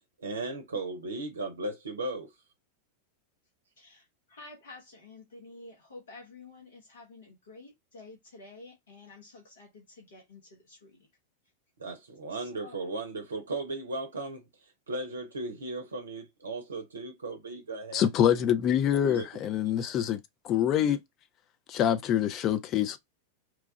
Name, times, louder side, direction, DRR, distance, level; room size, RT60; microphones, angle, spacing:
voice 1, 0.2-2.3 11.8-18.1 19.0-19.3, right 2 dB, 70° right, 0.6 m, -36 dB
voice 2, 3.8-11.1 12.3-12.8, left 3 dB, 65° left, 1.1 m, -50 dB
voice 3, 17.9-20.2 20.4-21.0 21.7-23.0, left 10 dB, 35° left, 0.5 m, -25 dB
3.1 x 2.3 x 3.7 m
figure-of-eight pair, 90°, 0 cm